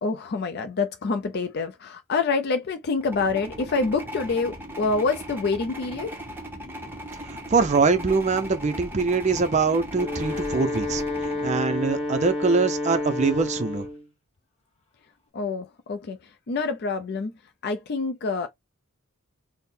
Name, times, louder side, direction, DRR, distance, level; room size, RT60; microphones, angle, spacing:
voice 1, 0.0-6.2 15.3-16.2 16.5-17.3 17.6-18.5, left 4 dB, 50° left, 0.4 m, -26 dB
sound 1, 3.0-12.4, equal, 10° right, 0.8 m, -38 dB
voice 2, 7.3-13.9, right 4 dB, 30° right, 0.5 m, -23 dB
Wind instrument woodwind instrument, 9.8-14.0, left 2 dB, 25° left, 1.1 m, -30 dB
3.6 x 2.1 x 4.2 m
head